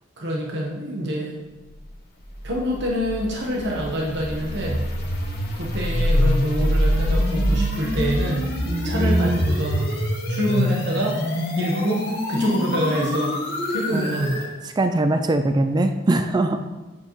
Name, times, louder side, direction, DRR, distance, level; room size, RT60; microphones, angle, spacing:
voice 1, 0.2-1.3 2.4-4.8 5.6-10.0 10.3-11.2 11.6-13.4 13.7-14.5, equal, 60° right, -2 dB, 1.1 m, -26 dB
sound 1, 2.3-14.5, equal, 55° left, 2.1 m, -24 dB
voice 2, 8.7-9.4 13.9-14.3 14.8-16.6, right 2 dB, 20° right, 8 dB, 0.3 m, -22 dB
7.6 x 7.2 x 3.1 m, 1.2 s
head